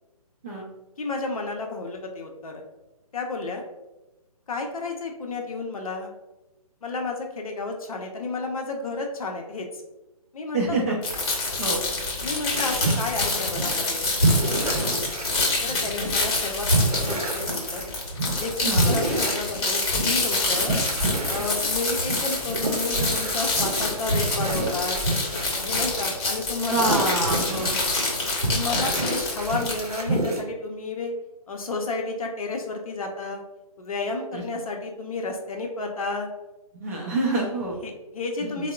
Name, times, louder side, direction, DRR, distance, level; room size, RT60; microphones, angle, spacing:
voice 1, 1.0-2.6 3.1-3.6 4.5-6.1 6.8-9.8 10.3-10.8 12.2-14.1 15.6-17.8 18.3-20.7 21.3-25.0 25.5-27.0 28.5-31.1 31.5-33.4 33.8-36.3 37.8-38.7, left 3 dB, 65° left, 2 dB, 0.6 m, -31 dB
voice 2, 10.5-11.0 11.6-11.8 18.6-19.0 26.7-27.8 34.3-34.4 36.7-37.8 38.4-38.6, right 2 dB, 25° right, -3 dB, 0.4 m, -26 dB
sound 1, 11.0-30.0, left 2 dB, 45° left, 0.9 m, -27 dB
sound 2, 12.5-13.9 14.2-16.2 16.7-26.0 26.7-28.1 28.4-30.4, right 1 dB, 80° right, 0.6 m, -28 dB
3.5 x 2.0 x 2.2 m, 1.0 s
figure-of-eight pair, 140°, 19 cm